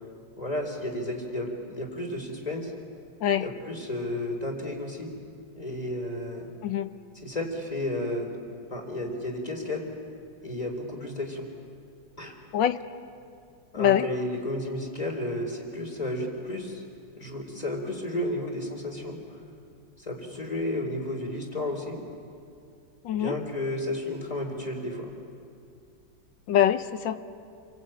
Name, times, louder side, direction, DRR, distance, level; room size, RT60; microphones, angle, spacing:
voice 1, 0.4-2.7 3.4-5.1 5.5-6.5 7.1-8.3 8.7-9.8 10.4-11.5 12.2-12.3 13.7-16.8 17.2-19.2 20.0-22.0 23.1-25.1, left 1 dB, 20° left, 2 dB, 3.9 m, -32 dB
voice 2, 6.6-6.9 12.5-12.8 13.8-14.1 23.0-23.3 26.5-27.2, left 10 dB, 75° left, 11 dB, 1.6 m, -24 dB
28.5 x 23.5 x 8.9 m, 2.4 s
omnidirectional pair, 2.1 m